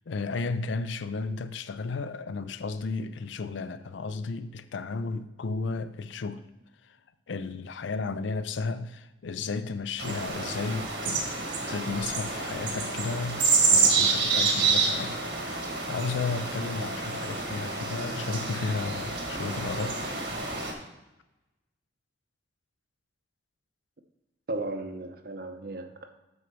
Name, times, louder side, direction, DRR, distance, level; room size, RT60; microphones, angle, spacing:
voice 1, 0.1-6.4 6.8-7.0 7.3-11.3 11.7-13.4 13.7-20.0, left 4 dB, 80° left, 0.5 m, -33 dB
sound 1, 10.0-20.7, right 4 dB, 70° right, 1.6 m, -28 dB
voice 2, 24.5-26.1, right 2 dB, 55° right, 0.7 m, -35 dB
8.2 x 6.3 x 4.6 m
head